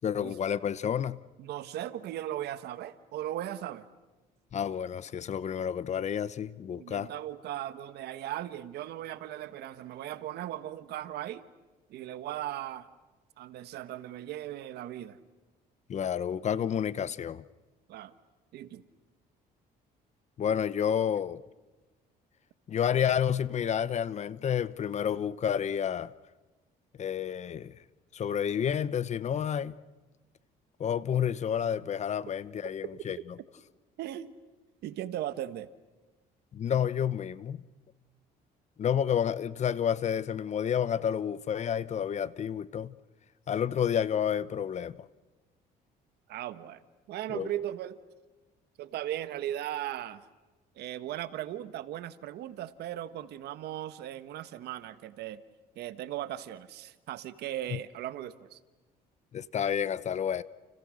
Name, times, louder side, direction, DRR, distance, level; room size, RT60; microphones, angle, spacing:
voice 1, 0.0-1.2 4.5-7.1 15.9-17.4 20.4-21.4 22.7-26.1 27.0-27.7 28.1-29.7 30.8-33.2 36.5-37.6 38.8-43.0 43.5-45.0 47.3-47.5 57.7-57.8 59.3-60.4, left 8 dB, 40° left, 0.9 m, -30 dB
voice 2, 1.4-3.9 6.7-11.4 11.9-12.9 13.4-15.2 17.9-18.1 18.5-18.8 33.0-33.1 34.0-34.3 34.8-35.7 46.3-46.8 47.1-48.0 48.8-50.2 50.7-55.4 55.7-58.6, right 12 dB, 75° right, 1.4 m, -37 dB
30.0 x 30.0 x 6.5 m
cardioid pair, 110°, 17 cm